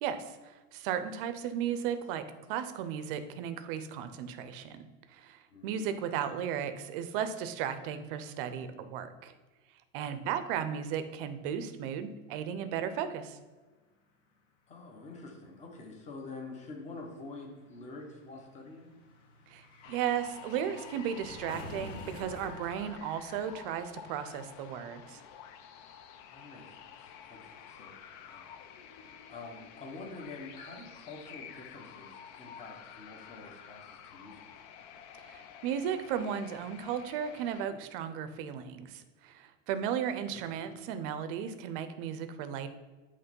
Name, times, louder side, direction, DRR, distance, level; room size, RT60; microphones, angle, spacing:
voice 1, 0.0-2.2 2.5-9.3 9.9-13.4 19.5-25.2 35.3-42.7, right 8 dB, 45° right, 10 dB, 0.7 m, -35 dB
voice 2, 5.5-5.9 10.0-10.1 14.7-18.9 26.3-28.0 28.3-28.6 29.3-34.4 40.3-40.5, left 3 dB, 20° left, 1 dB, 1.1 m, -47 dB
sound 1, 13.6-13.7 13.8-24.2 24.5-24.6, left 2 dB, 80° left, 1.8 m, -50 dB
sound 2, 19.8-37.6, left 8 dB, 40° left, 0.6 m, -50 dB
8.1 x 3.2 x 5.3 m, 1.3 s
supercardioid pair, 150°, 37 cm